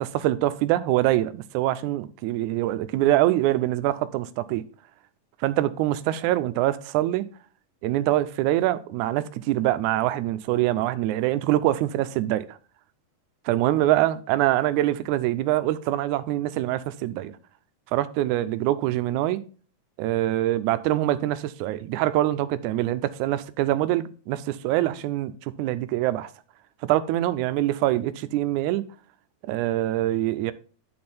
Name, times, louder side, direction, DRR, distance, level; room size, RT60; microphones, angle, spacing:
voice 1, 0.0-4.6 5.4-7.3 7.8-12.6 13.5-17.3 17.9-19.4 20.0-26.3 26.8-28.9 29.4-30.5, right 14 dB, 80° right, 1.9 m, -24 dB
9.5 x 4.2 x 4.2 m
omnidirectional pair, 3.6 m